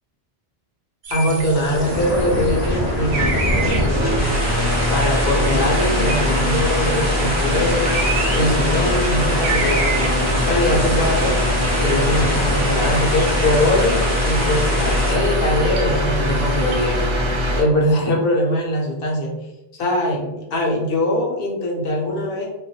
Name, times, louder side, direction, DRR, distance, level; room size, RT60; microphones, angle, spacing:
sound 1, 1.0-17.1, right 3 dB, 85° right, 0.9 m, -32 dB
voice 1, 1.1-4.3 4.9-7.9 8.3-11.3 11.8-17.1 17.6-19.3 19.7-22.5, left 1 dB, 65° left, -2 dB, 0.9 m, -22 dB
sound 2, 1.3-15.1, left 1 dB, 20° left, 0.7 m, -25 dB
sound 3, 2.8-17.6, left 1 dB, 40° right, 0.4 m, -22 dB
2.3 x 2.3 x 2.7 m, 0.98 s
omnidirectional pair, 1.1 m